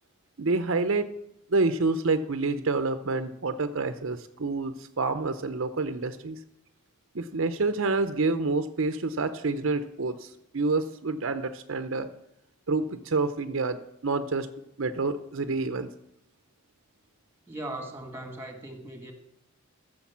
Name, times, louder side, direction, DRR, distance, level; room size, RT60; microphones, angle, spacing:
voice 1, 0.4-1.1 1.5-6.4 7.1-12.1 12.7-14.5 14.8-15.9, right 3 dB, 60° right, 0.7 m, -28 dB
voice 2, 17.5-19.1, right 1 dB, 10° right, 1.7 m, -38 dB
14.5 x 6.4 x 7.3 m
head